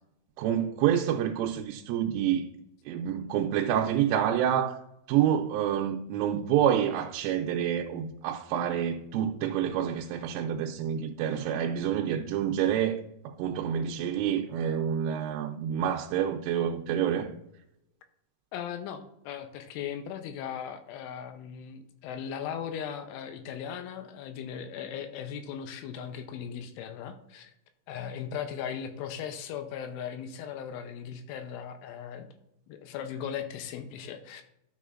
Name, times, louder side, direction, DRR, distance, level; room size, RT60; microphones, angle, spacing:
voice 1, 0.4-2.4 2.9-4.8 5.1-17.3, right 9 dB, 85° right, 3.1 m, -28 dB
voice 2, 18.5-27.5 27.9-32.3 32.7-34.4, left 8 dB, 85° left, 3.0 m, -38 dB
12.5 x 6.4 x 2.5 m
omnidirectional pair, 5.7 m